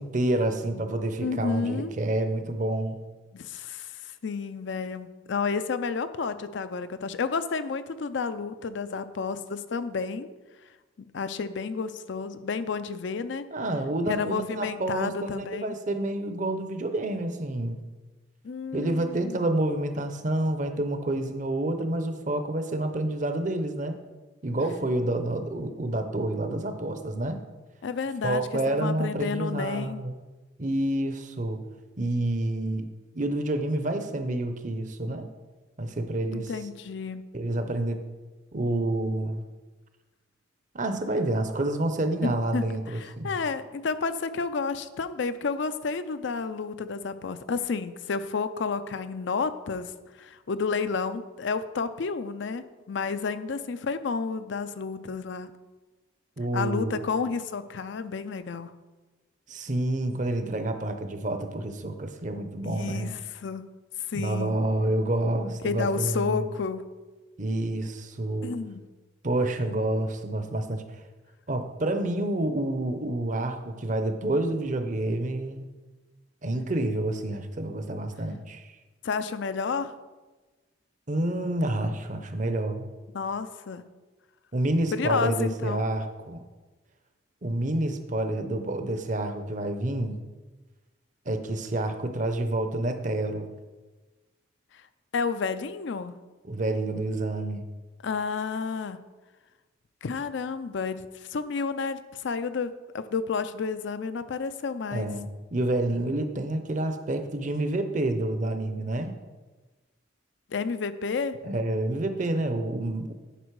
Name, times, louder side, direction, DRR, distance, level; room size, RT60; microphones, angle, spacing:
voice 1, 0.0-3.0 13.5-17.8 18.7-23.9 24.4-27.4 28.2-30.1 30.6-31.6 32.0-32.9 33.1-35.3 35.8-36.5 37.3-38.0 38.5-39.5 40.7-43.4 56.4-57.0 59.5-63.1 64.1-66.5 67.4-68.5 69.2-71.0 71.5-75.7 76.4-78.7 81.1-82.9 84.5-86.4 87.4-90.2 91.3-93.5 96.4-97.6 104.9-109.2 111.4-113.1, right 1 dB, 40° right, 8 dB, 0.7 m, -28 dB
voice 2, 1.2-1.9 3.3-10.3 11.0-13.5 14.1-15.7 18.4-19.4 27.8-30.0 36.3-37.2 42.2-49.9 50.2-55.5 56.5-58.7 62.6-63.7 64.1-64.6 65.6-66.8 68.4-68.8 79.0-79.9 83.1-83.8 84.9-85.9 95.1-96.2 98.0-99.0 100.0-105.1 110.5-111.4, left 5 dB, 65° left, 12 dB, 0.4 m, -31 dB
10.0 x 5.2 x 4.7 m, 1.2 s
head